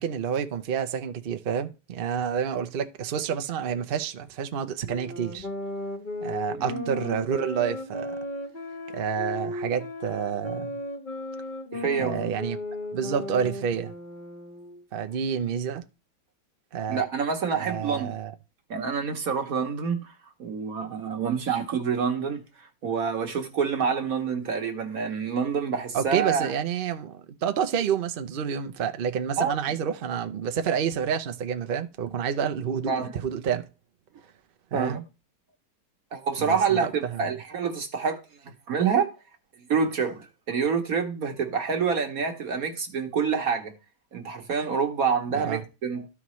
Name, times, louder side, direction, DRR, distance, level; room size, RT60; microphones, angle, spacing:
voice 1, 0.0-5.5 6.2-8.2 8.9-10.8 12.0-12.6 12.9-13.9 14.9-15.8 16.7-17.0 17.5-18.3 25.9-33.7 34.7-35.0 36.4-37.2 45.3-45.6, right 7 dB, 75° right, 0.5 m, -29 dB
sound 1, 4.8-14.9, left 1 dB, 35° left, 1.0 m, -35 dB
voice 2, 6.5-6.8 11.7-12.2 16.9-18.1 18.7-20.1 20.4-22.4 22.8-26.5 29.4-29.5 32.9-33.1 34.7-35.0 36.1-39.1 39.7-43.7 44.1-46.1, right 6 dB, 60° right, 1.3 m, -27 dB
13.0 x 4.9 x 3.1 m
omnidirectional pair, 1.9 m